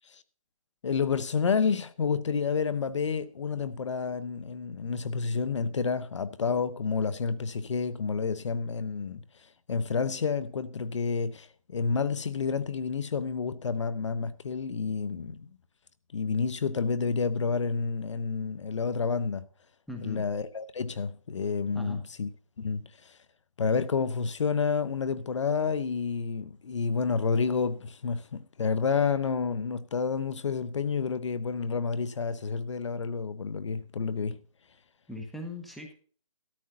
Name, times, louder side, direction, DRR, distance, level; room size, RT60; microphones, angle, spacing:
voice 1, 0.8-15.5 16.1-19.5 20.0-22.3 22.6-23.2 23.6-34.4, left 5 dB, 60° left, 1.0 m, -29 dB
voice 2, 19.9-20.3 21.7-22.0 35.1-35.9, left 2 dB, ahead, 1.1 m, -39 dB
13.5 x 13.0 x 2.7 m
hypercardioid pair, 160°, 17 cm